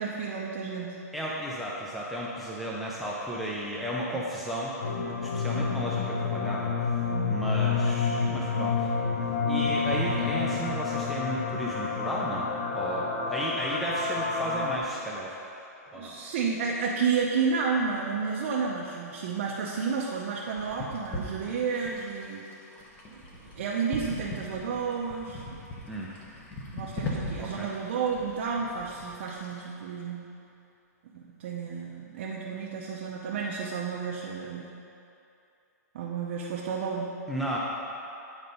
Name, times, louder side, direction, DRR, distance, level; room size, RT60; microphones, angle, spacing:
voice 1, 0.0-1.0 7.1-7.4 15.9-22.5 23.1-25.6 26.7-30.2 31.1-34.7 35.9-37.1, right 5 dB, 45° right, -3 dB, 0.6 m, -31 dB
voice 2, 1.1-7.0 7.3-8.9 9.4-15.4 15.9-16.2 25.9-26.1 27.4-27.7 37.3-37.6, right 1 dB, ahead, -6 dB, 0.4 m, -34 dB
sound 1, 4.8-14.8, left 5 dB, 50° left, 0.7 m, -29 dB
sound 2, 19.6-29.7, left 2 dB, 15° left, 0.8 m, -40 dB
9.4 x 4.0 x 5.3 m, 2.7 s
hypercardioid pair, 165°, 9 cm